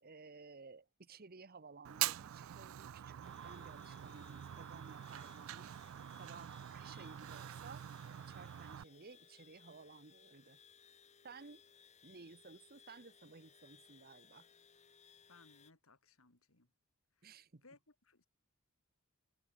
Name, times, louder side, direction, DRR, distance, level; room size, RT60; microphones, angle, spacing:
voice 1, 0.0-5.7 6.2-10.6 11.2-11.6 12.0-14.5 17.2-17.6, right 4 dB, 45° right, 1.0 m, -56 dB
Fire, 1.8-8.8, right 13 dB, 70° right, 0.3 m, -44 dB
sound 1, 3.2-15.7, left 7 dB, 35° left, 1.2 m, -64 dB
voice 2, 15.3-16.7 17.1-17.3 17.6-18.3, left 3 dB, 85° left, 3.0 m, -64 dB
head